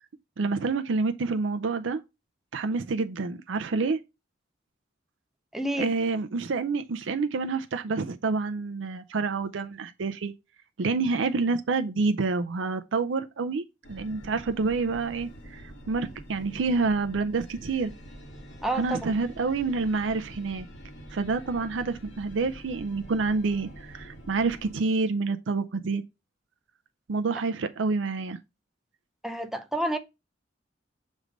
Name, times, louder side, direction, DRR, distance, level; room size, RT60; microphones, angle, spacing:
voice 1, 0.4-2.0 2.5-4.0 5.8-10.3 10.8-17.9 18.8-20.7 21.1-26.0 27.1-28.4, right 4 dB, 85° right, 0.5 m, -28 dB
voice 2, 5.5-5.9 18.6-19.1 29.2-30.0, right 1 dB, ahead, 0.6 m, -29 dB
sound 1, 13.8-24.8, equal, 80° left, 1.7 m, -46 dB
6.2 x 3.3 x 5.1 m
head